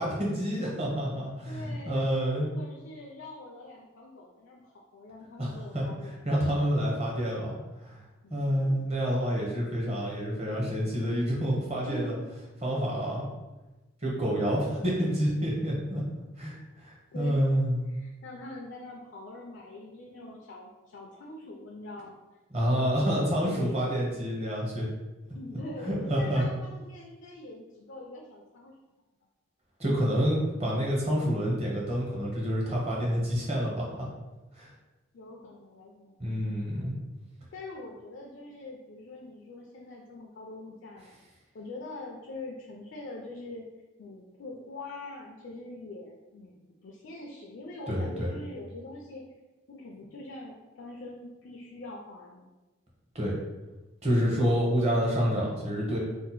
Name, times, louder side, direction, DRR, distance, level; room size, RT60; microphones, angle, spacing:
voice 1, 0.0-2.5 5.4-7.5 7.8-8.0 8.3-12.1 12.6-13.3 14.0-16.0 16.4-17.8 22.5-24.9 25.8-26.4 29.8-34.0 34.5-34.7 36.2-36.9 47.9-48.3 53.1-53.4 54.0-56.0, equal, 30° right, -4 dB, 0.7 m, -28 dB
voice 2, 1.5-2.1 2.5-6.3 8.2-8.9 11.8-12.2 17.1-17.4 17.9-22.2 22.6-23.8 25.3-28.8 35.1-36.2 36.7-36.9 37.5-41.2 41.5-43.7 44.0-49.2 49.7-52.5, left 2 dB, 60° left, -1 dB, 0.4 m, -43 dB
2.7 x 2.1 x 4.0 m, 1.1 s
head